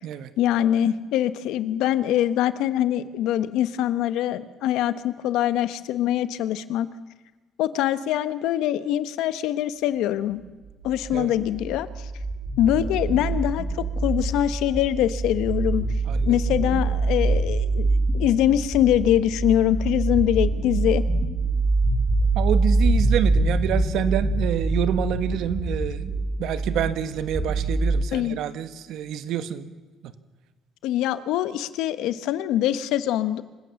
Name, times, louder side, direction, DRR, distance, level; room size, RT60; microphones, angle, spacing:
voice 1, 0.4-6.9 7.6-10.4 10.8-12.1 12.6-15.8 16.2-21.0 28.1-28.4 30.8-33.4, left 12 dB, 80° left, 13 dB, 1.1 m, -23 dB
sound 1, 10.8-27.9, right 2 dB, 30° right, 7.0 m, -25 dB
voice 2, 16.1-16.4 22.3-26.1 26.4-29.7 30.0-30.1, right 9 dB, 60° right, 12 dB, 1.3 m, -27 dB
27.0 x 16.0 x 7.1 m, 1.2 s
cardioid pair, 180°, 0 cm